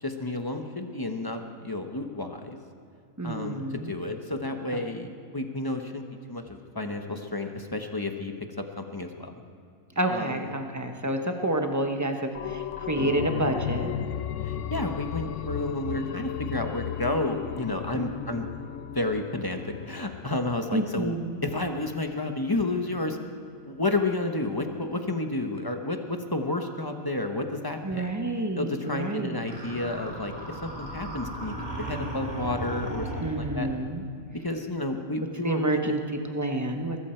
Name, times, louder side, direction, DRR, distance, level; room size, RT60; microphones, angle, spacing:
voice 1, 0.0-2.6 3.2-8.3 8.8-9.3 10.1-10.5 14.4-18.5 18.9-19.6 19.9-21.1 21.4-23.2 23.7-28.1 28.5-33.7 34.3-35.9, left 2 dB, 20° left, 5 dB, 0.9 m, -31 dB
voice 2, 3.2-3.9 4.7-4.8 10.0-13.9 17.9-18.3 20.7-21.4 27.8-29.4 33.2-34.0 35.4-36.0 36.3-37.0, right 1 dB, 15° right, 4 dB, 1.0 m, -29 dB
sound 1, 12.3-21.7 22.1-22.2, left 10 dB, 70° left, 0.9 m, -35 dB
sound 2, 29.4-33.8, right 1 dB, 30° right, 3.6 m, -36 dB
22.5 x 13.5 x 4.5 m, 2.4 s
omnidirectional pair, 1.4 m